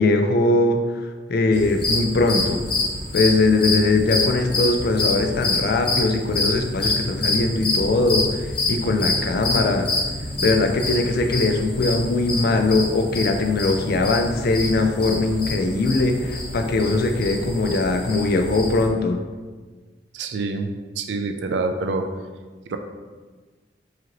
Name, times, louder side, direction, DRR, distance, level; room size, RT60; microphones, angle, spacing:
voice 1, 0.0-2.6 3.1-9.9 10.4-19.2, left 2 dB, 60° left, 5 dB, 0.4 m, -21 dB
sound 1, 1.5-18.9, left 2 dB, 30° left, 1.1 m, -27 dB
voice 2, 20.1-20.7 21.0-22.1 22.7-22.8, right 3 dB, 75° right, 6 dB, 0.4 m, -26 dB
4.8 x 3.0 x 2.9 m, 1.4 s
head